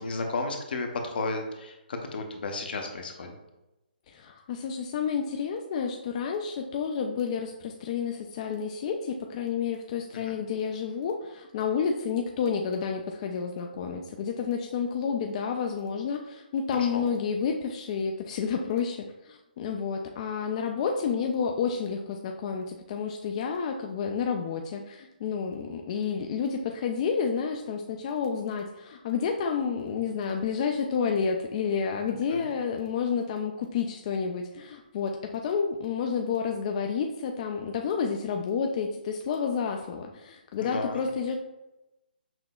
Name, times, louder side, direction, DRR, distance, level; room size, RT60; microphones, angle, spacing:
voice 1, 0.0-3.3 10.3-10.4 16.8-17.0 32.3-32.5 40.6-41.0, left 3 dB, 70° left, 3 dB, 0.8 m, -33 dB
voice 2, 4.1-41.4, left 6 dB, 40° left, 3 dB, 0.3 m, -30 dB
6.0 x 2.8 x 2.3 m, 0.98 s
hypercardioid pair, 145°, 5 cm